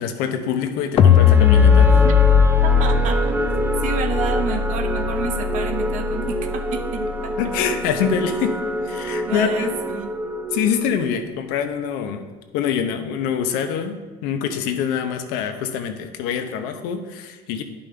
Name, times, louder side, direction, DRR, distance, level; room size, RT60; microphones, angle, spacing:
voice 1, 0.0-1.9 7.4-8.5 8.8-9.7 10.5-12.2 12.5-17.6, left 7 dB, 70° left, 7 dB, 0.9 m, -25 dB
sound 1, 1.0-7.3, left 7 dB, 40° left, 0.5 m, -17 dB
sound 2, 1.0-11.2, right 1 dB, 10° right, 0.7 m, -27 dB
voice 2, 2.6-3.3 3.8-7.3 9.3-10.1, right 6 dB, 55° right, 6 dB, 0.9 m, -30 dB
9.9 x 5.5 x 3.3 m, 1.3 s
supercardioid pair, 95°, 16 cm